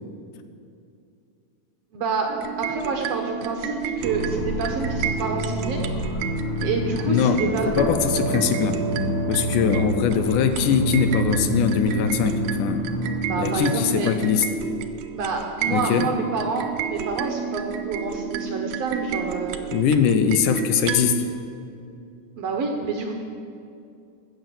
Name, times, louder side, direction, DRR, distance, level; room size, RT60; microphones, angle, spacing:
voice 1, 1.9-5.8 6.6-7.8 13.3-14.1 15.1-19.6 22.4-23.1, right 4 dB, 65° right, 2 dB, 1.7 m, -28 dB
sound 1, 2.3-21.2, right 7 dB, 80° right, 2.1 m, -31 dB
sound 2, 4.0-13.5, equal, 45° left, 2.6 m, -29 dB
voice 2, 7.1-8.8 9.3-12.8 13.4-14.5 15.7-16.1 19.7-21.2, left 7 dB, 80° left, 9 dB, 2.2 m, -22 dB
sound 3, 7.7-15.2, right 2 dB, 45° right, 0.6 m, -35 dB
14.5 x 8.1 x 6.9 m, 2.5 s
omnidirectional pair, 3.8 m